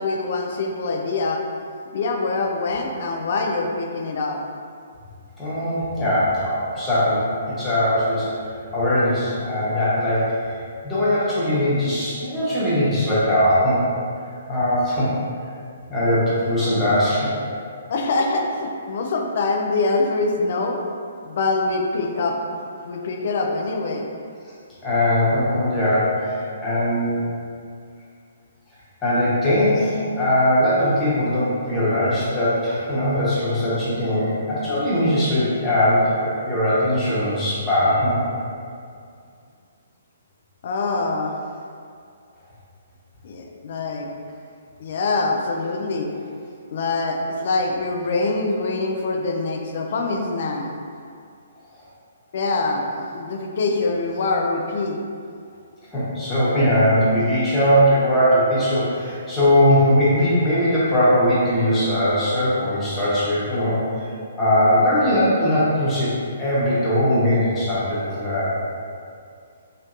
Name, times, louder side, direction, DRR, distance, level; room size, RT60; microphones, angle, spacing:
voice 1, 0.0-1.4 1.9-4.4 17.9-20.8 21.2-24.1 40.6-41.3 43.2-44.1 44.8-46.1 46.7-50.7 52.3-55.0, left 3 dB, 50° left, 1 dB, 0.4 m, -24 dB
voice 2, 5.4-8.3 8.7-10.6 10.8-13.8 14.5-15.1 15.9-17.3 24.8-27.3 29.0-38.1 55.9-63.8 64.4-66.1 66.4-68.5, left 1 dB, 15° left, -11 dB, 1.0 m, -20 dB
3.0 x 2.9 x 2.5 m, 2.3 s
figure-of-eight pair, 125°, 0 cm